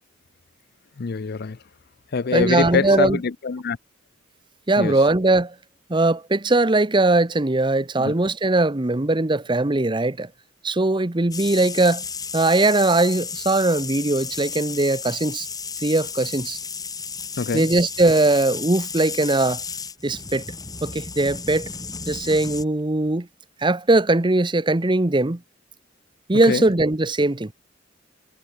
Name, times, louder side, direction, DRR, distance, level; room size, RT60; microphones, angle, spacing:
voice 1, 1.0-1.6 2.1-3.8 4.8-4.9 8.0-8.1 17.4-17.7 26.5-26.6, left 4 dB, 50° left, 0.5 m, -24 dB
voice 2, 2.3-3.2 4.7-5.5 5.9-10.3 10.6-12.0 12.3-15.5 15.8-16.6 17.5-19.6 20.0-20.4 20.8-21.7 22.1-23.3 23.6-25.4 26.3-27.5, right 2 dB, 25° right, 0.9 m, -20 dB
sound 1, 11.3-22.6, left 5 dB, 20° left, 4.3 m, -33 dB
head